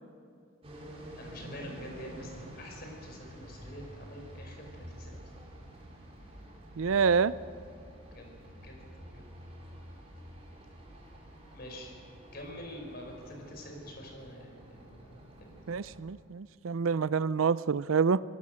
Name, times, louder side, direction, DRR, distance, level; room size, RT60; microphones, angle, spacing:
sound 1, 0.6-16.0, right 1 dB, 30° right, 4.2 m, -49 dB
voice 1, 1.2-5.3 8.1-8.3 8.6-8.8 9.1-9.2 11.5-11.9 12.3-15.2, equal, 50° left, 2 dB, 5.3 m, -46 dB
voice 2, 6.8-7.3 15.7-18.2, right 5 dB, 85° right, 17 dB, 0.5 m, -27 dB
26.5 x 18.0 x 6.5 m, 2.5 s
head